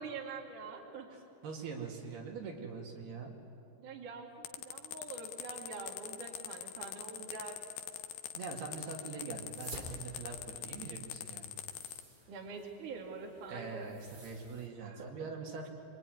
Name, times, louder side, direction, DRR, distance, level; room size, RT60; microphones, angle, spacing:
voice 1, 0.0-1.1 3.8-7.6 12.3-13.9 14.8-15.3, right 4 dB, 50° right, 0 dB, 3.5 m, -45 dB
voice 2, 1.1-3.3 8.3-11.5 13.5-15.7, right 5 dB, 70° right, 1 dB, 4.4 m, -43 dB
sound 1, 4.4-12.0, left 11 dB, 75° left, 2.5 m, -43 dB
sound 2, 9.3-14.7, right 1 dB, 25° right, 3.3 m, -52 dB
27.0 x 23.5 x 9.3 m, 2.6 s
omnidirectional pair, 4.8 m